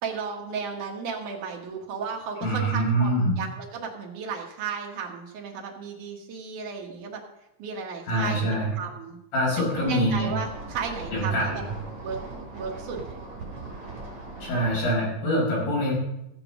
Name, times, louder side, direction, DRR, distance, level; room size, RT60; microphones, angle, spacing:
voice 1, 0.0-7.2 7.6-8.5 8.8-9.2 9.8-11.6 12.0-13.0, right 6 dB, 85° right, 0 dB, 1.7 m, -34 dB
voice 2, 2.4-3.4 8.1-8.7 9.3-10.3 11.1-11.7 14.4-15.9, equal, 50° left, -5 dB, 7.5 m, -24 dB
sound 1, 9.7-14.8, right 3 dB, 30° right, 3.6 m, -39 dB
15.5 x 7.2 x 6.0 m, 0.85 s
omnidirectional pair, 5.7 m